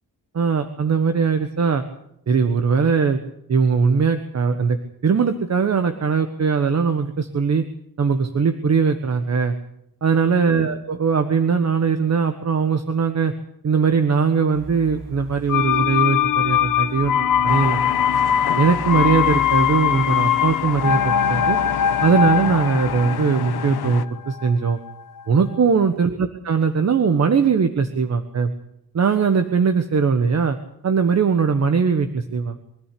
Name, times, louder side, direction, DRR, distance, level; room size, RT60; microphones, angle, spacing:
voice 1, 0.3-1.8 2.3-3.2 3.5-4.8 5.0-7.6 8.0-9.5 10.0-13.3 13.6-17.8 18.6-21.6 22.0-24.8 25.3-28.5 28.9-30.6 30.8-32.6, right 5 dB, 45° right, 8 dB, 1.5 m, -20 dB
sound 1, 14.5-23.3, right 2 dB, 70° right, 6.2 m, -40 dB
sound 2, 15.5-25.2 25.5-25.6, left 9 dB, 60° left, 1.1 m, -21 dB
sound 3, 17.5-24.1, left 10 dB, 85° left, 1.2 m, -30 dB
23.5 x 14.0 x 8.6 m, 0.74 s
wide cardioid pair, 150°, 37 cm